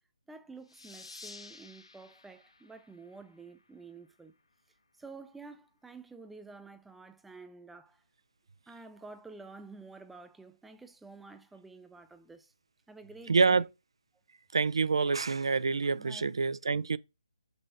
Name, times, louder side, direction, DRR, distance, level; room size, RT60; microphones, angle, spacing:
voice 1, 0.3-4.3 5.0-8.0 8.7-12.5 12.9-13.7 15.9-16.3, right 3 dB, 5° right, 0.5 m, -50 dB
sound 1, 0.7-3.9, left 3 dB, 70° left, 1.1 m, -52 dB
voice 2, 13.3-13.6 14.5-17.0, right 4 dB, 60° right, 0.4 m, -27 dB
6.2 x 5.4 x 2.9 m
figure-of-eight pair, 145°, 3 cm